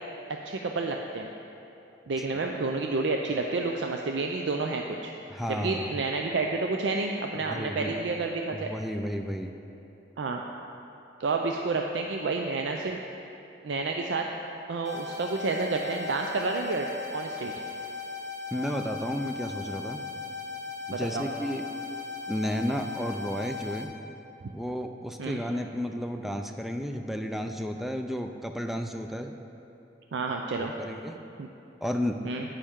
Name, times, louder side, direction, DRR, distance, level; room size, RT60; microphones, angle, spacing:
voice 1, 0.4-1.3 2.1-5.1 5.5-8.7 10.2-10.4 11.2-13.0 13.6-14.3 14.7-17.5 20.9-21.3 25.2-25.4 30.1-30.7 31.4-31.5 32.2-32.4, right 3 dB, 90° right, 2 dB, 0.5 m, -30 dB
voice 2, 5.3-5.9 7.5-8.0 8.5-9.5 18.5-20.1 20.9-21.7 22.3-24.0 24.5-29.4 30.6-31.2 31.8-32.3, equal, ahead, 5 dB, 0.4 m, -32 dB
sound 1, 14.8-23.8, left 4 dB, 50° right, 1.1 m, -38 dB
9.8 x 8.8 x 3.6 m, 2.9 s
head